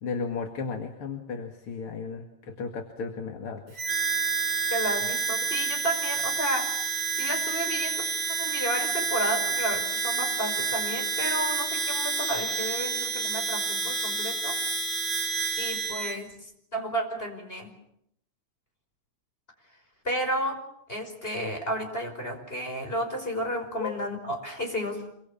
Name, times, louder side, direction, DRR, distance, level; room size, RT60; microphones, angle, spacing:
voice 1, 0.0-3.9 23.8-23.9, left 5 dB, 50° left, 4 dB, 2.8 m, -34 dB
Harmonica, 3.8-16.2, right 5 dB, 75° right, 5.4 m, -29 dB
voice 2, 4.7-6.7 7.2-8.1 8.4-14.6 15.6-17.7 20.0-20.6 20.9-25.0, equal, 20° left, 4 dB, 5.6 m, -32 dB
26.5 x 24.5 x 7.2 m, 0.74 s
omnidirectional pair, 3.3 m